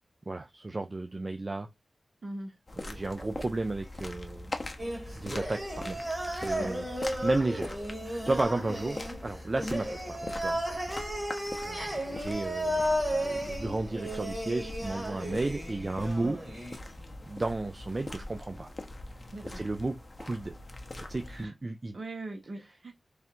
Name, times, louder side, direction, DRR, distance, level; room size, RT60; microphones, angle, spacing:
voice 1, 0.3-1.7 2.8-4.5 5.1-6.0 6.3-10.6 11.6-16.4 17.3-18.7 19.4-20.6 21.0-21.9, right 2 dB, 40° right, 0.4 m, -33 dB
voice 2, 2.2-2.5 6.6-6.8 16.2-16.4 19.3-19.6 21.4-21.5 21.9-22.9, right 2 dB, 55° right, 1.0 m, -40 dB
sound 1, 2.7-21.4, left 2 dB, 35° left, 0.8 m, -42 dB
sound 2, 4.8-16.8, equal, 20° right, 1.8 m, -34 dB
3.3 x 2.5 x 4.3 m
wide cardioid pair, 70°, 0 cm